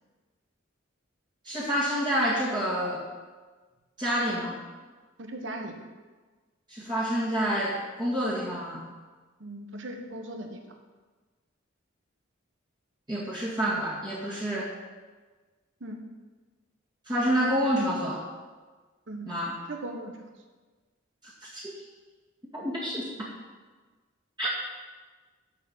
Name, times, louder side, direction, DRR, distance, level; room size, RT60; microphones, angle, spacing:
voice 1, 1.4-3.0 4.0-4.6 6.7-8.8 13.1-14.7 17.1-18.2 19.3-19.5 21.2-21.7 22.5-23.3 24.4-24.5, equal, 25° right, -7 dB, 1.9 m, -28 dB
voice 2, 5.2-5.8 9.4-10.6 15.8-16.0 19.1-19.4 19.7-20.1, right 1 dB, 70° right, 4 dB, 1.3 m, -38 dB
12.5 x 4.7 x 6.6 m, 1.4 s
head